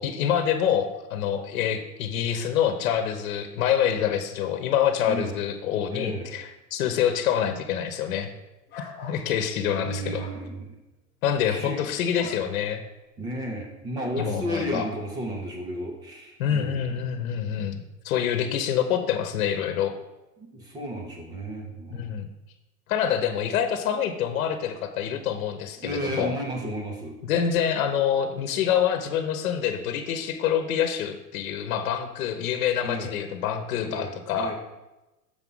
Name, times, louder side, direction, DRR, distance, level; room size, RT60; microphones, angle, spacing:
voice 1, 0.0-8.3 9.0-10.2 11.2-12.8 14.2-14.9 16.4-19.9 21.9-22.3 22.9-26.3 27.2-34.5, left 9 dB, 60° left, 8 dB, 1.1 m, -26 dB
voice 2, 5.9-6.3 9.7-10.7 11.5-11.9 12.2-12.3 13.2-17.0 17.3-17.6 20.4-22.2 25.8-27.2 32.8-33.1 33.8-34.5, right 1 dB, 10° right, 2 dB, 0.5 m, -33 dB
sound 1, 8.7-9.2 10.1-10.4 12.1-12.4, left 3 dB, 25° left, 0.8 m, -42 dB
6.9 x 4.8 x 5.5 m, 1.0 s
supercardioid pair, 155°, 48 cm